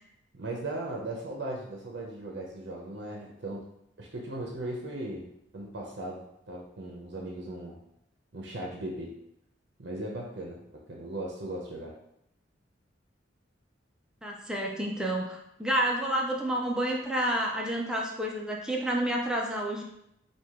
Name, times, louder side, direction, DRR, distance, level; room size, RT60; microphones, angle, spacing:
voice 1, 0.3-3.6 4.0-5.3 5.5-7.8 8.3-9.1 9.8-11.9, right 1 dB, 70° right, -1 dB, 0.7 m, -38 dB
voice 2, 14.2-19.8, right 1 dB, 5° right, -1 dB, 0.5 m, -29 dB
4.7 x 2.4 x 3.6 m, 0.78 s
head